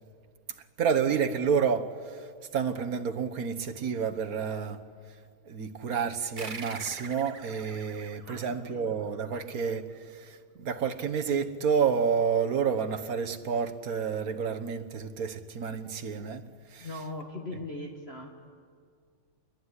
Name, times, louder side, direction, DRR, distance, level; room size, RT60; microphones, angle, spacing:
voice 1, 0.8-2.3 2.5-4.8 5.4-16.4 16.7-16.9, right 6 dB, 50° right, 1.5 m, -29 dB
sound 1, 6.4-9.3, right 4 dB, 30° right, 1.1 m, -44 dB
voice 2, 8.2-8.9 16.8-18.5, left 2 dB, 30° left, 2.0 m, -40 dB
27.5 x 21.0 x 9.7 m
omnidirectional pair, 2.2 m